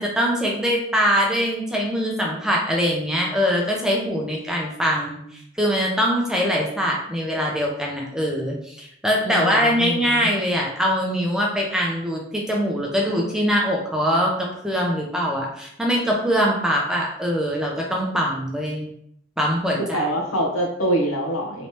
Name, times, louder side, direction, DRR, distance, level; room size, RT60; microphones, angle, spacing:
voice 1, 0.0-5.2 5.6-18.9 19.4-20.1, equal, 5° right, -2 dB, 0.5 m, -23 dB
voice 2, 9.2-10.3 19.8-21.7, right 1 dB, 90° left, -1 dB, 0.9 m, -25 dB
3.2 x 3.1 x 2.8 m, 0.70 s
head